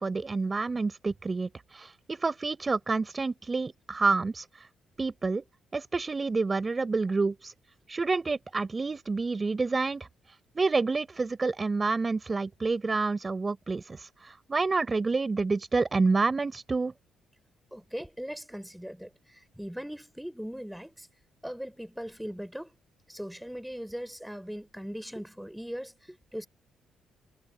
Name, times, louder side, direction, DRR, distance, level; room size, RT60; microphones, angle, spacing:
voice 1, 0.0-4.5 5.0-5.4 5.7-7.5 7.9-10.1 10.6-16.9, right 3 dB, 25° right, 5.2 m, -28 dB
voice 2, 17.7-21.1 21.4-22.7 23.1-26.5, equal, ahead, 7.1 m, -39 dB
cardioid pair, 90°, 0 cm